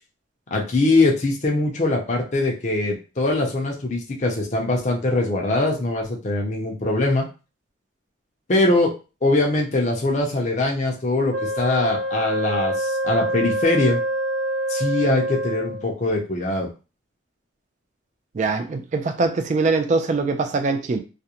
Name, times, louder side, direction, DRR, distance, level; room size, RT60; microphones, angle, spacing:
voice 1, 0.5-7.3 8.5-8.9 9.2-14.0 14.7-16.7, left 2 dB, 40° left, 0.6 m, -22 dB
Wind instrument woodwind instrument, 11.3-15.9, right 1 dB, 60° right, 0.7 m, -26 dB
voice 2, 18.3-21.0, right 3 dB, 40° right, 0.3 m, -22 dB
2.4 x 2.1 x 2.8 m
head